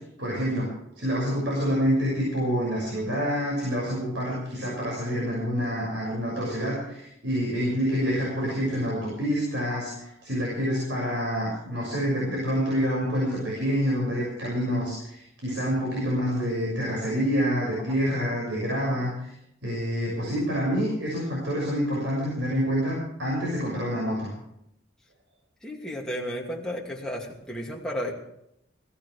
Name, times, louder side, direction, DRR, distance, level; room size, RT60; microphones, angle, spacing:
voice 1, 0.2-19.3 19.6-24.3, equal, 70° right, -4 dB, 6.4 m, -27 dB
voice 2, 25.6-28.1, equal, 5° left, -3 dB, 2.5 m, -33 dB
21.0 x 16.5 x 3.5 m, 0.77 s
head